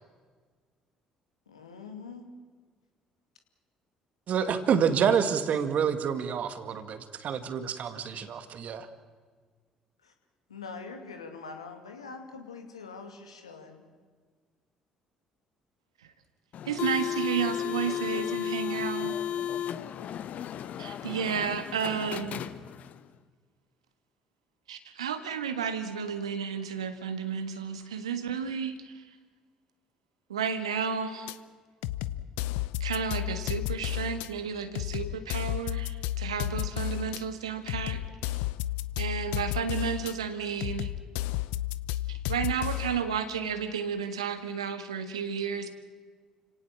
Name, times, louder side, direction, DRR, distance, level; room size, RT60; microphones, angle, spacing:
voice 1, 1.5-2.3 10.0-10.1 10.5-13.8, left 4 dB, 85° left, 5 dB, 2.4 m, -44 dB
voice 2, 4.3-8.9, right 7 dB, 55° right, 10 dB, 2.1 m, -28 dB
sound 1, 16.5-23.0, left 10 dB, 55° left, 1.1 m, -34 dB
voice 3, 16.7-19.2 20.8-22.4 24.7-29.0 30.3-31.3 32.8-38.4 39.0-40.9 42.1-45.7, right 7 dB, 85° right, 9 dB, 1.6 m, -32 dB
sound 2, 31.3-31.4 31.8-34.3 34.7-37.2 37.7-40.1 40.6-43.0, left 15 dB, 70° left, 0.7 m, -32 dB
29.5 x 18.0 x 7.4 m, 1.6 s
figure-of-eight pair, 50°, 3 cm